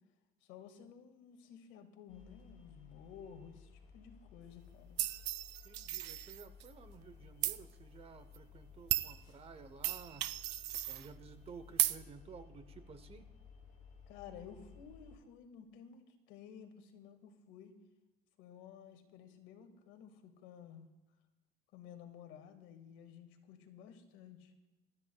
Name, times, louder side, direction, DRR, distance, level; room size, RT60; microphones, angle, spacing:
voice 1, 0.4-5.0 14.1-17.7 18.4-20.9 21.7-24.5, left 8 dB, 80° left, 6 dB, 1.8 m, -54 dB
sound 1, 2.1-15.2, left 6 dB, 45° left, 5.8 m, -57 dB
sound 2, 5.0-6.7 7.4-7.6 8.3-8.4 8.9-9.1 9.8-11.1 11.8-12.0, right 15 dB, 65° right, 0.6 m, -35 dB
voice 2, 5.6-10.2 10.9-13.3, right 5 dB, 30° right, 11 dB, 0.8 m, -54 dB
24.5 x 13.0 x 2.3 m, 1.0 s
cardioid pair, 140°, 20 cm